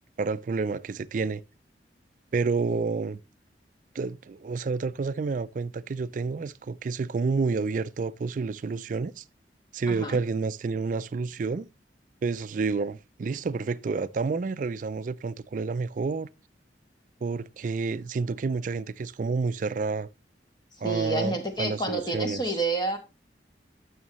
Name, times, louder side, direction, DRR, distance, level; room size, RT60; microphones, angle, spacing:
voice 1, 0.2-1.4 2.3-3.2 3.9-9.2 9.7-11.7 12.2-16.3 17.2-20.1 20.8-22.4, right 4 dB, 45° right, 0.4 m, -29 dB
voice 2, 9.9-10.2 20.7-23.0, right 2 dB, 25° left, 1.4 m, -29 dB
11.0 x 6.3 x 3.0 m
head